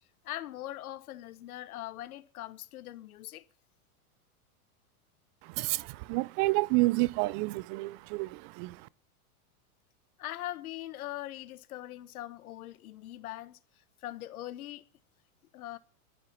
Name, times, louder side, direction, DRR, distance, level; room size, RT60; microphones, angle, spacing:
voice 1, 0.2-3.5 10.2-13.6 14.0-14.8 15.5-15.8, left 14 dB, 75° left, 1.5 m, -41 dB
voice 2, 5.4-8.9, right 22 dB, 40° right, 0.7 m, -29 dB
13.0 x 10.5 x 7.3 m
supercardioid pair, 130°, 44 cm